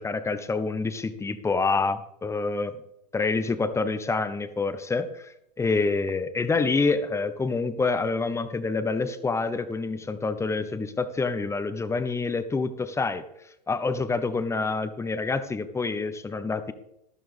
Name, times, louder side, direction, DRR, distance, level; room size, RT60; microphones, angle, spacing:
voice 1, 0.0-2.8 3.1-13.2 13.7-16.7, left 4 dB, 15° left, 12 dB, 1.0 m, -27 dB
12.5 x 12.5 x 3.4 m, 0.79 s
hypercardioid pair, 95°, 21 cm